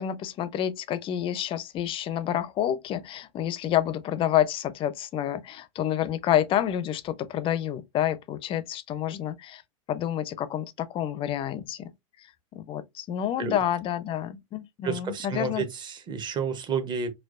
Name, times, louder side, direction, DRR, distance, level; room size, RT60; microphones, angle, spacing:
voice 1, 0.0-9.6 9.9-11.9 12.5-15.6, left 11 dB, 30° left, 0.5 m, -28 dB
voice 2, 14.8-17.1, right 5 dB, 25° right, 0.9 m, -30 dB
4.4 x 2.2 x 2.5 m
hypercardioid pair, 120°, 17 cm